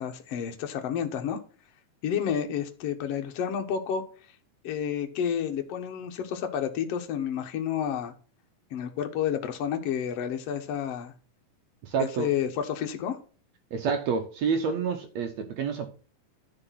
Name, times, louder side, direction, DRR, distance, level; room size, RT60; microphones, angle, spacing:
voice 1, 0.0-1.4 2.0-4.0 4.6-8.1 8.7-11.1 12.0-13.2, left 8 dB, 65° left, 1.7 m, -30 dB
voice 2, 11.8-12.3 13.7-15.9, right 6 dB, 80° right, 1.5 m, -28 dB
10.5 x 5.0 x 5.8 m
omnidirectional pair, 4.2 m